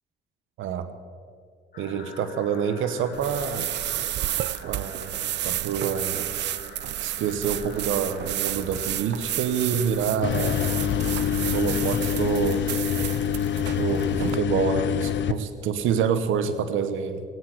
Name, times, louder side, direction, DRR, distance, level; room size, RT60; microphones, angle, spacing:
sound 1, 1.7-12.1, left 4 dB, 50° left, 3.7 m, -45 dB
voice 1, 1.8-3.6 4.7-6.2 7.0-10.6 11.4-12.6 13.8-17.2, right 7 dB, 85° right, 11 dB, 1.0 m, -27 dB
sound 2, 3.1-14.4, right 13 dB, 60° right, 0.4 m, -31 dB
sound 3, 10.2-15.3, left 9 dB, 65° left, 0.8 m, -25 dB
19.0 x 9.7 x 7.8 m, 2.1 s
cardioid pair, 90°, 20 cm